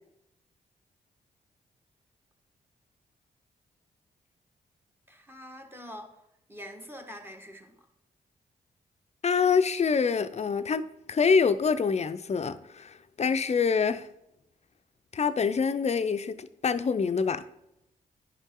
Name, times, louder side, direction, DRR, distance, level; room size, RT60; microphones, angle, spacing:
voice 1, 5.1-6.1 6.5-7.9, equal, 15° right, 1.5 m, -44 dB
voice 2, 9.2-14.1 15.1-17.4, left 5 dB, 40° left, 0.6 m, -26 dB
10.5 x 5.3 x 3.7 m
cardioid pair, 55°, 17 cm